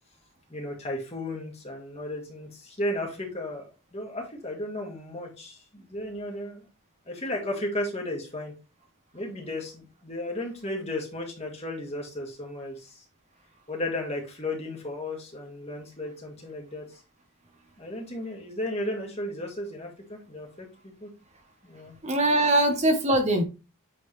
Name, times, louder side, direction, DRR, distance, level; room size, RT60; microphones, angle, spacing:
voice 1, 0.5-3.7 3.9-6.6 7.1-8.5 9.1-13.0 13.7-17.0 17.8-20.7 21.0-21.1 21.6-21.9, left 1 dB, 30° left, 0 dB, 2.0 m, -34 dB
voice 2, 22.0-23.4, right 1 dB, 30° right, 4 dB, 0.9 m, -22 dB
8.5 x 3.9 x 3.1 m, 0.29 s
head